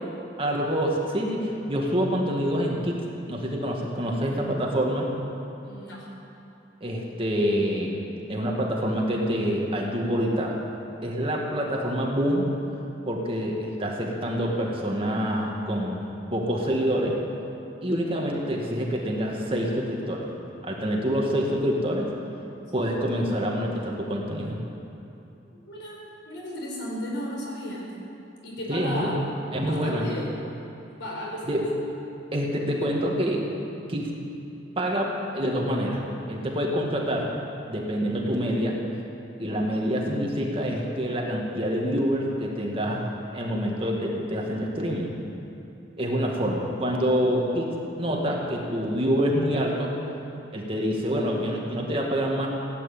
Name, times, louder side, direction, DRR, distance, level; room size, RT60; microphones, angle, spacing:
voice 1, 0.4-3.0 3.3-5.1 6.8-10.6 11.0-12.5 13.1-17.2 17.8-20.3 20.6-22.1 22.7-24.6 28.7-29.1 29.5-30.1 31.5-31.7 32.3-33.5 33.9-34.1 34.8-37.4 37.7-38.8 39.4-43.1 43.3-45.1 46.0-49.9 50.5-52.5, equal, 30° right, -1 dB, 2.0 m, -26 dB
voice 2, 5.6-6.1 25.5-27.9 28.4-30.3 31.0-31.6 46.2-46.4, equal, 75° left, -3 dB, 4.9 m, -35 dB
17.0 x 9.6 x 8.6 m, 2.9 s
head